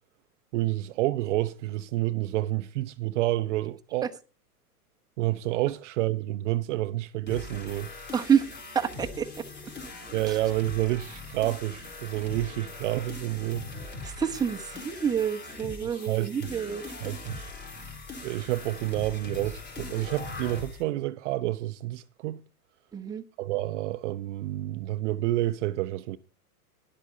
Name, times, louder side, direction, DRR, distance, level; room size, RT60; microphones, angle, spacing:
voice 1, 0.5-4.1 5.2-7.9 10.1-13.7 16.1-16.3 17.0-17.5 18.2-22.4 23.4-26.2, right 16 dB, 50° right, 0.6 m, -29 dB
sound 1, 7.3-20.8, left 3 dB, 20° left, 3.8 m, -41 dB
voice 2, 8.1-8.5 8.7-9.7 10.3-10.4 14.0-16.8 22.9-23.2, right 7 dB, 10° right, 0.9 m, -28 dB
11.0 x 8.1 x 5.5 m
hypercardioid pair, 125°, 47 cm